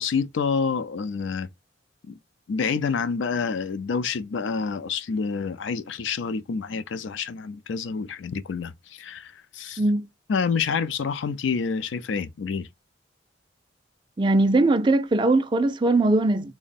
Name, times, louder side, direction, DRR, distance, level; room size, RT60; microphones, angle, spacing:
voice 1, 0.0-1.5 2.1-2.2 2.5-9.8 10.3-12.7, left 5 dB, 80° left, 0.4 m, -28 dB
voice 2, 14.2-16.5, right 2 dB, 25° right, 0.3 m, -20 dB
3.5 x 2.1 x 4.0 m
head